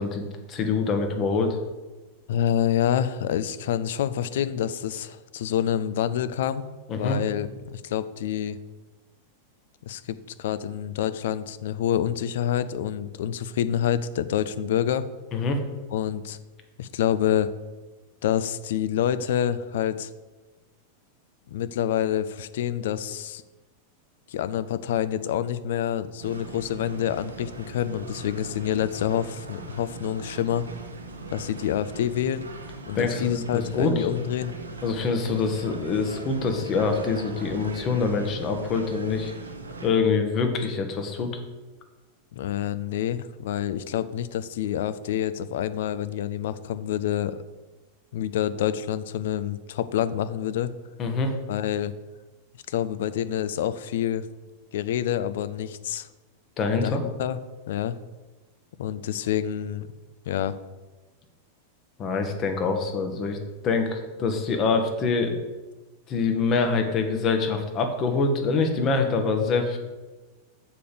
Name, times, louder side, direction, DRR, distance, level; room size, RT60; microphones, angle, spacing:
voice 1, 0.0-1.6 6.9-7.2 15.3-15.6 32.9-34.1 34.8-39.3 39.8-41.3 51.0-51.3 56.6-57.0 62.0-63.4 63.6-65.3 66.1-69.8, left 4 dB, 30° left, 5 dB, 1.2 m, -25 dB
voice 2, 2.3-6.6 7.0-8.6 9.8-15.1 15.9-16.4 16.8-17.5 18.2-20.1 21.5-23.4 24.3-30.7 31.3-32.5 32.9-34.6 42.3-47.4 48.1-50.7 51.5-51.9 52.7-54.3 54.7-56.1 56.8-57.4 57.7-57.9 58.8-59.9 60.3-60.6, left 10 dB, 55° left, 13 dB, 0.4 m, -27 dB
sound 1, 26.2-39.9, right 3 dB, 75° right, 0.9 m, -40 dB
6.7 x 5.0 x 6.9 m, 1.2 s
figure-of-eight pair, 90°, 0 cm